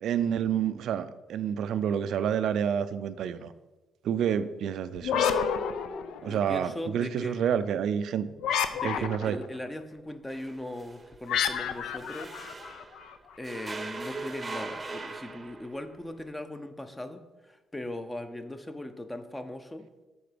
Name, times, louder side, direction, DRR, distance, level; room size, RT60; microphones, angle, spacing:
voice 1, 0.0-3.5 4.0-5.2 6.2-8.3 8.8-9.4, right 8 dB, 75° right, 13 dB, 0.3 m, -29 dB
sound 1, 5.0-6.5 8.4-9.5 11.3-13.1, left 7 dB, 80° left, 0.4 m, -29 dB
voice 2, 6.2-7.6 8.7-12.4 13.4-19.9, left 1 dB, 15° left, 8 dB, 0.6 m, -39 dB
sound 2, 10.3-13.1 13.4-15.9, right 3 dB, 25° right, 0.7 m, -40 dB
6.9 x 3.8 x 5.0 m, 1.1 s
cardioid pair, 90°, 0 cm